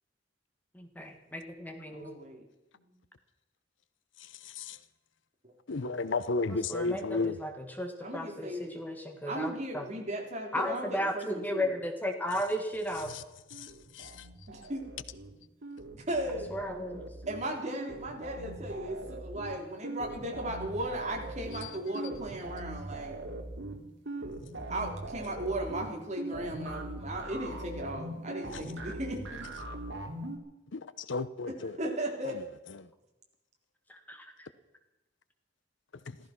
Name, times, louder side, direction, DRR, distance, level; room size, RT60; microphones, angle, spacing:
voice 1, 0.7-2.1 6.5-9.8 10.5-13.1 16.5-17.1 33.9-34.5, equal, 10° left, 1.7 m, -35 dB
voice 2, 1.9-2.4 2.7-2.9 8.0-8.8 9.3-11.7 14.5-14.8 15.9-16.5 17.3-23.2 24.7-29.2 31.8-32.4, right 1 dB, 40° right, 3.7 m, -36 dB
voice 3, 4.4-4.8 5.7-7.4 13.9-14.3 21.6-21.7 30.7-31.8 32.2-32.4 32.8-32.9 36.1-36.2, left 3 dB, 80° left, 0.8 m, -33 dB
sound 1, 13.5-15.3 15.6-30.4, right 2 dB, 80° right, 2.5 m, -41 dB
15.5 x 14.5 x 6.0 m
head